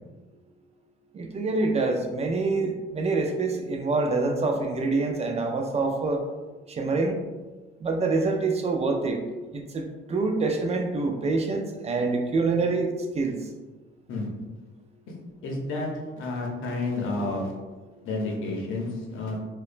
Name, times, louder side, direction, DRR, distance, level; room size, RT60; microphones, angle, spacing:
voice 1, 1.1-6.2 6.7-7.2 7.8-9.2 9.5-12.9 13.1-13.4, right 3 dB, 35° right, 3 dB, 0.3 m, -26 dB
voice 2, 15.4-15.9 16.2-17.5 18.0-19.4, left 2 dB, 80° left, -1 dB, 0.7 m, -30 dB
2.8 x 2.2 x 2.4 m, 1.3 s
cardioid pair, 90°, 20 cm